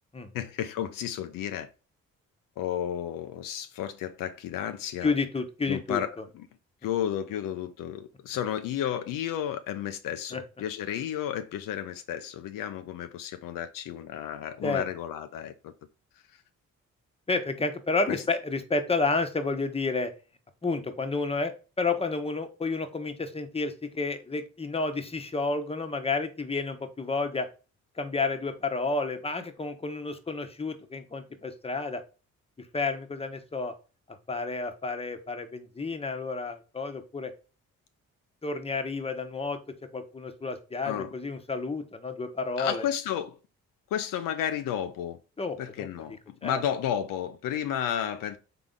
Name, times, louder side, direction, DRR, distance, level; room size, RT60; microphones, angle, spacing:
voice 1, 0.3-1.7 2.6-5.1 5.7-6.5 6.8-15.7 18.1-18.2 40.8-41.1 42.6-43.4 43.9-45.2 45.6-48.4, left 10 dB, 70° left, 0.5 m, -32 dB
voice 2, 5.0-6.0 10.3-10.4 14.6-14.8 17.3-20.1 20.6-27.5 28.0-32.0 32.6-33.7 34.3-37.3 38.4-39.6 39.9-42.8 45.4-45.9 46.4-46.6, left 3 dB, 15° left, 0.9 m, -30 dB
3.8 x 3.4 x 3.7 m
supercardioid pair, 55°, 34 cm